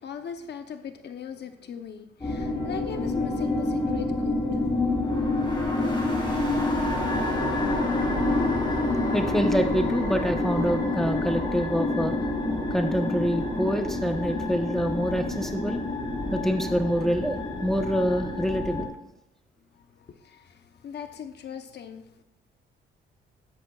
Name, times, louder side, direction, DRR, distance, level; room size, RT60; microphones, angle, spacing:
voice 1, 0.0-4.7 5.3-5.8 19.7-22.2, left 7 dB, 60° left, 0.9 m, -40 dB
sound 1, 2.2-18.9, left 2 dB, 25° left, 4.2 m, -27 dB
voice 2, 9.1-12.2 12.7-15.8 16.3-18.9, equal, ahead, 1.0 m, -26 dB
13.5 x 11.0 x 2.4 m
cardioid pair, 90°, 20 cm